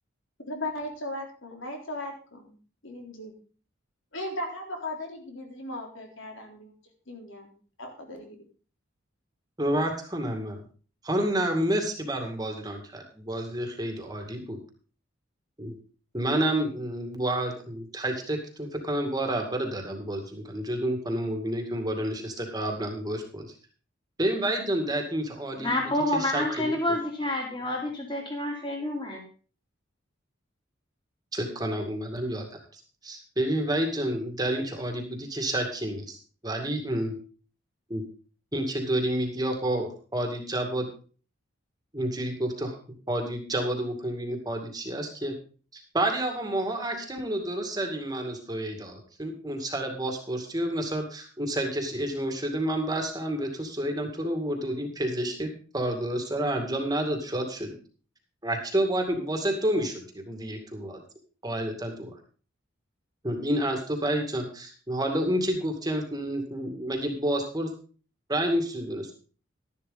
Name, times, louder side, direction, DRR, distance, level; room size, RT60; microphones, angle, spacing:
voice 1, 0.4-2.5 2.8-3.3 4.1-6.7 7.1-7.5 7.8-8.4, left 1 dB, 75° left, 2 dB, 3.7 m, -37 dB
voice 2, 9.6-10.6 11.0-14.6 15.6-15.8 16.1-23.5 24.2-26.8 31.3-36.2 36.4-37.1 37.9-38.0 38.5-40.9 41.9-42.8 43.1-45.3 45.7-55.5 55.7-57.8 58.4-61.0 61.4-62.1 63.2-67.7 68.3-69.1, right 1 dB, 20° right, 3 dB, 2.2 m, -29 dB
voice 3, 25.6-29.2, left 1 dB, 25° left, 1 dB, 3.4 m, -28 dB
12.5 x 11.0 x 4.0 m, 0.38 s
head